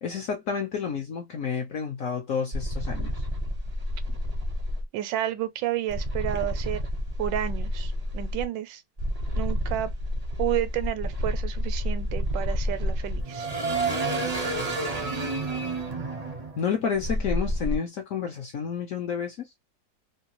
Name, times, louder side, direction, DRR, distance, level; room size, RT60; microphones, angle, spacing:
voice 1, 0.0-3.3 16.6-19.5, left 6 dB, 65° left, 0.8 m, -30 dB
sound 1, 2.5-4.8 5.9-8.4 9.0-17.8, equal, 40° right, 0.6 m, -29 dB
voice 2, 4.9-6.8 7.2-8.8 9.4-9.9 10.4-13.5, right 12 dB, 80° right, 1.2 m, -30 dB
3.0 x 2.3 x 2.8 m
omnidirectional pair, 2.0 m